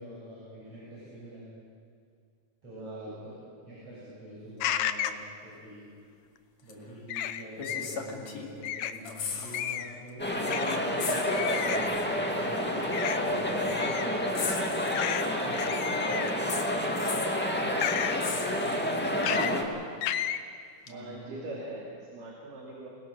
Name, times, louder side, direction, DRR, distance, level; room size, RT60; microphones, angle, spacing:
voice 1, 0.0-1.5 2.6-3.3 3.6-5.8 6.6-11.3 11.5-14.4 15.4-16.9 17.5-17.8 18.2-18.4 18.9-19.8 20.9-21.6, equal, 45° right, -9 dB, 8.0 m, -45 dB
voice 2, 2.8-3.2 20.9-22.9, right 2 dB, 75° right, -3 dB, 4.3 m, -42 dB
sound 1, 4.6-5.2 7.1-7.9 8.6-9.0 9.5-10.0 10.5-10.8 11.3-11.9 12.9-13.2 13.7-14.1 14.9-15.3 15.5-16.4 17.8-18.2 19.2-19.5 20.0-20.4, left 11 dB, 75° left, 2.1 m, -32 dB
sound 2, 6.7-6.8 7.6-8.7 8.9-9.8 10.1-10.2 11.0-11.8 12.9-13.0 14.4-15.4 16.5-17.4 18.2-19.1 20.9-21.0, left 6 dB, 60° left, 3.1 m, -38 dB
sound 3, 10.2-19.6, left 1 dB, 5° left, 1.5 m, -29 dB
28.5 x 19.5 x 6.4 m, 2.2 s
omnidirectional pair, 3.8 m